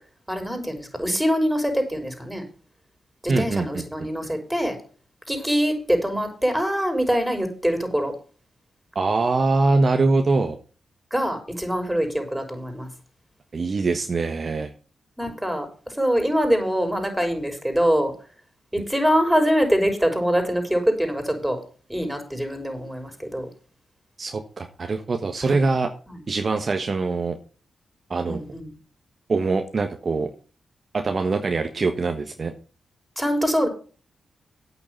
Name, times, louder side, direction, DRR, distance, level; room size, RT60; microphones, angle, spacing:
voice 1, 0.3-2.4 3.2-4.8 5.3-8.1 11.1-12.9 15.2-15.7 16.0-18.1 18.7-21.6 21.9-23.5 25.4-25.6 26.1-26.2 28.3-28.7 33.2-33.7, equal, 5° right, 5 dB, 5.6 m, -24 dB
voice 2, 3.3-4.1 8.9-10.6 13.5-14.7 24.2-25.9 26.3-27.4 28.1-28.4 29.3-30.3 30.9-32.5, right 3 dB, 50° right, 6 dB, 1.4 m, -23 dB
8.8 x 6.9 x 8.2 m, 0.37 s
supercardioid pair, 45°, 0 cm